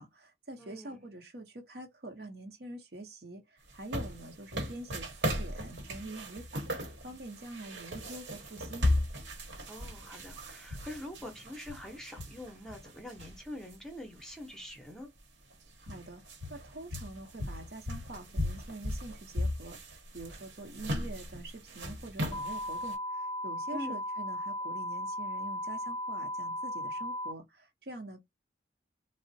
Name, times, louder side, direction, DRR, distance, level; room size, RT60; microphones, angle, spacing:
voice 1, 0.0-8.9 15.8-16.2 16.5-28.2, right 2 dB, 60° right, 0.8 m, -45 dB
voice 2, 0.6-1.1 9.7-15.1 23.7-24.0, left 1 dB, 5° left, 0.7 m, -44 dB
sound 1, 3.7-13.8 14.2-14.3 15.2-15.3 15.5-23.0, left 1 dB, 80° right, 1.0 m, -37 dB
sound 2, 22.3-27.3, left 1 dB, 25° left, 0.3 m, -36 dB
3.6 x 2.0 x 2.7 m
head